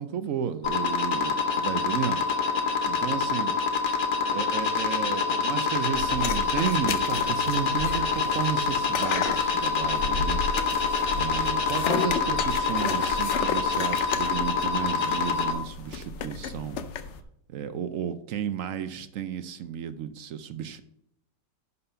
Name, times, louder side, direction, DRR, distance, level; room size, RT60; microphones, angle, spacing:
voice 1, 0.0-2.2 2.8-3.6 4.3-10.4 11.1-16.8 17.5-20.8, right 8 dB, 70° right, 11 dB, 0.8 m, -33 dB
sound 1, 0.6-15.5, left 5 dB, 35° left, 0.9 m, -26 dB
sound 2, 5.9-17.2, left 6 dB, 65° left, 0.7 m, -33 dB
10.5 x 4.1 x 5.6 m, 0.76 s
omnidirectional pair, 1.9 m